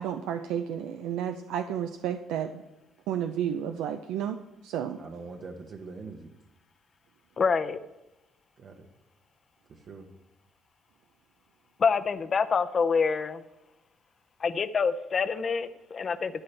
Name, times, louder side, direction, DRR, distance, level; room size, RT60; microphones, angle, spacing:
voice 1, 0.0-2.6 3.1-4.4 4.6-5.0, right 9 dB, 90° right, 7 dB, 0.5 m, -31 dB
voice 2, 5.0-6.3 8.6-8.9 9.7-10.1, right 4 dB, 50° right, 2 dB, 0.9 m, -43 dB
voice 3, 7.4-7.8 11.8-13.4 14.4-16.4, left 5 dB, 35° left, 11 dB, 0.6 m, -26 dB
12.5 x 10.0 x 3.3 m, 0.95 s
cardioid pair, 115°, 0 cm